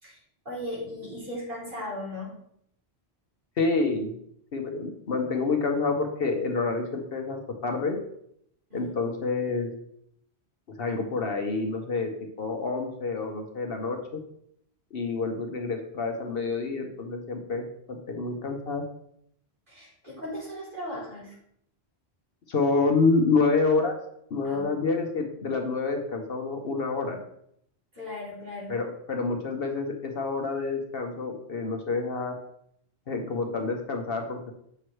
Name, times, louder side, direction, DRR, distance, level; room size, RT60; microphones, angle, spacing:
voice 1, 0.5-2.3 8.7-8.8 19.7-21.4 24.4-24.7 28.0-28.7, left 1 dB, 50° right, -6 dB, 3.5 m, -37 dB
voice 2, 3.6-4.1 4.5-8.0 8.7-9.7 10.7-12.1 12.4-14.0 14.9-18.8 22.5-24.0 24.3-27.2 28.7-32.3 33.1-34.5, left 3 dB, 60° left, 3 dB, 1.1 m, -28 dB
7.8 x 6.1 x 3.2 m, 0.72 s
omnidirectional pair, 1.1 m